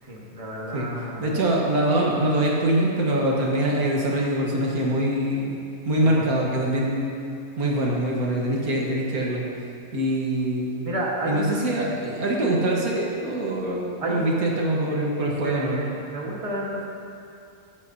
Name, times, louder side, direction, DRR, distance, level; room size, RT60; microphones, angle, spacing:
voice 1, 0.0-1.4 5.9-6.3 10.8-11.6 14.0-14.4 15.4-16.9, right 1 dB, 25° right, -4 dB, 1.5 m, -31 dB
voice 2, 1.2-5.5 5.9-7.1 7.6-9.4 9.9-10.9 11.3-15.8, right 1 dB, 80° right, -3 dB, 1.9 m, -24 dB
20.0 x 7.3 x 2.8 m, 2.5 s
omnidirectional pair, 1.5 m